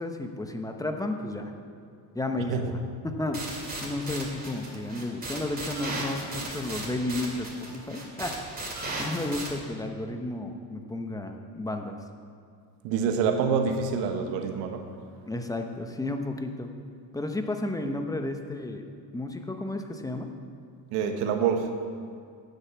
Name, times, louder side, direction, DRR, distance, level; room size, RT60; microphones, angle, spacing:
voice 1, 0.0-1.5 2.1-3.5 3.8-8.4 9.0-12.0 15.3-16.7 17.1-18.8 19.1-20.3, left 2 dB, 5° left, 5 dB, 0.9 m, -32 dB
sound 1, 3.3-9.5, right 2 dB, 20° right, 2.5 m, -36 dB
voice 2, 12.8-14.9 20.9-21.7, right 6 dB, 90° right, 6 dB, 1.2 m, -26 dB
9.1 x 8.0 x 7.1 m, 2.4 s
cardioid pair, 110°, 47 cm